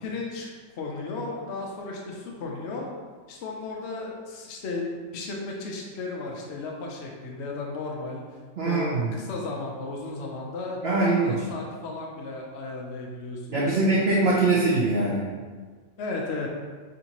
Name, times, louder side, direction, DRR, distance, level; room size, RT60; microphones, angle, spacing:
voice 1, 0.0-2.9 3.3-4.8 5.1-8.2 8.6-13.8 16.0-16.5, left 3 dB, 70° left, -1 dB, 0.6 m, -34 dB
voice 2, 8.6-9.2 10.8-11.4 13.5-15.2, right 3 dB, 60° right, -7 dB, 0.7 m, -23 dB
6.5 x 2.7 x 2.9 m, 1.4 s
omnidirectional pair, 2.0 m